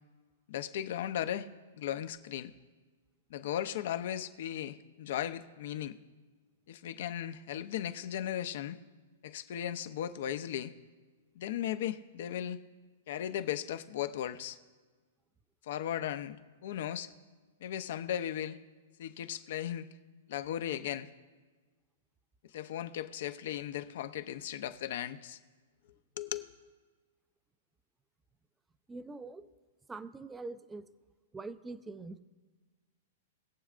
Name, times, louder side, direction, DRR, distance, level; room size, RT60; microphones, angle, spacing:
voice 1, 0.5-1.5 1.8-2.5 3.3-6.0 6.7-8.8 9.2-10.7 11.4-12.6 13.1-14.6 15.6-17.1 17.6-18.6 19.0-19.9 20.3-21.1 22.5-25.4 26.2-26.5, left 11 dB, 65° left, 11 dB, 0.7 m, -36 dB
voice 2, 28.9-29.5 29.9-30.9 31.3-32.2, right 3 dB, 10° right, 13 dB, 0.5 m, -43 dB
21.0 x 7.2 x 2.5 m, 1.4 s
hypercardioid pair, 130°, 0 cm